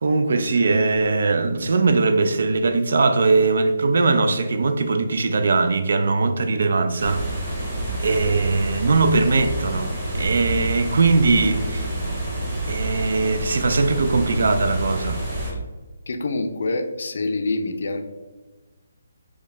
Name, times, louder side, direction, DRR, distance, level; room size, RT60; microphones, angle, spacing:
voice 1, 0.0-7.5 8.0-11.9 12.7-15.2, right 3 dB, 60° right, 0.4 m, -20 dB
sound 1, 7.0-15.5, right 1 dB, 20° right, 1.1 m, -28 dB
voice 2, 16.1-18.0, left 2 dB, 55° left, 0.4 m, -26 dB
4.5 x 2.2 x 3.3 m
hypercardioid pair, 170°, 0 cm